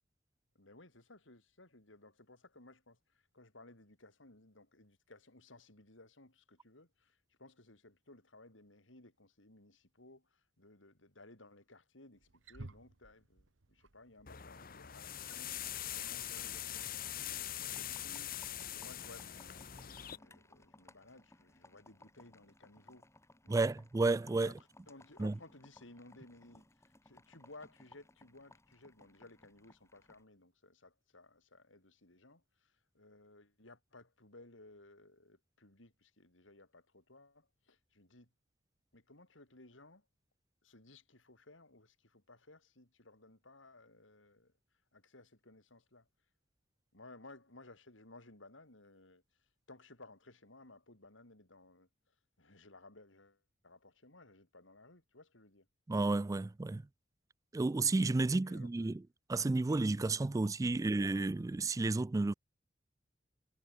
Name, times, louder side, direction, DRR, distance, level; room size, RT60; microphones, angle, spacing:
voice 1, 0.5-19.5 20.1-23.1 23.4-23.8 24.4-38.3 38.9-40.1 40.6-44.5 44.9-46.1 46.9-55.7 58.4-58.9 60.3-60.4, left 2 dB, 85° left, 5.0 m, -59 dB
Wild animals, 12.1-20.7, right 2 dB, 75° right, 1.2 m, -60 dB
sound 1, 14.3-20.2, left 11 dB, 50° left, 1.1 m, -43 dB
sound 2, 16.7-30.2, left 2 dB, 15° left, 2.8 m, -63 dB
voice 2, 23.5-24.5 25.2-25.3 55.9-56.8 57.5-59.0 59.3-62.3, right 3 dB, 15° right, 0.3 m, -32 dB
head